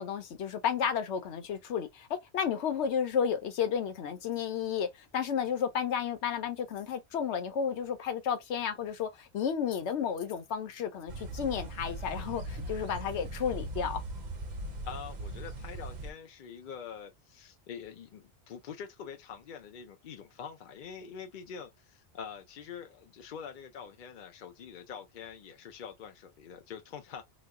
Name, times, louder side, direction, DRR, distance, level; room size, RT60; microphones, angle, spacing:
voice 1, 0.0-14.0, left 7 dB, 85° left, 1.0 m, -32 dB
sound 1, 11.1-16.1, right 1 dB, 45° right, 0.7 m, -39 dB
voice 2, 14.8-27.2, left 7 dB, 60° left, 0.6 m, -45 dB
3.1 x 2.1 x 3.5 m
omnidirectional pair, 1.1 m